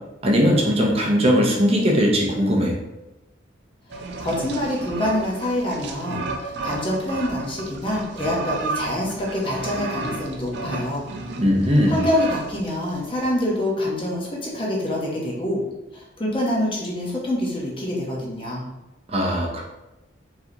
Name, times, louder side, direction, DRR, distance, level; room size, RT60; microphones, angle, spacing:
voice 1, 0.2-2.8 11.4-12.1 19.1-19.6, equal, 30° right, -1 dB, 0.8 m, -19 dB
sound 1, 3.9-13.3, right 3 dB, 60° right, 0.5 m, -33 dB
voice 2, 4.2-11.0 11.9-15.6 15.9-18.6, left 1 dB, 25° left, -3 dB, 1.0 m, -26 dB
4.6 x 3.3 x 2.8 m, 0.97 s
head